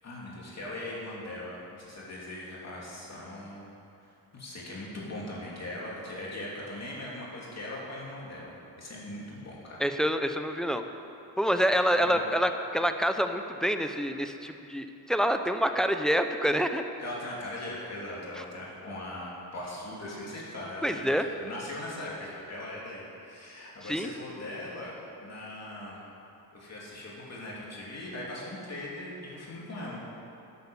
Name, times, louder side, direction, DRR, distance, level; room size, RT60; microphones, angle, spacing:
voice 1, 0.0-3.6 4.3-9.8 11.7-12.2 17.0-24.9 25.2-26.0 26.5-30.0, left 1 dB, 40° left, -5 dB, 3.1 m, -40 dB
voice 2, 9.8-10.8 11.4-16.8 20.8-21.3 23.9-24.1, equal, ahead, 7 dB, 0.6 m, -27 dB
11.0 x 8.4 x 7.1 m, 2.8 s
cardioid pair, 110°, 41 cm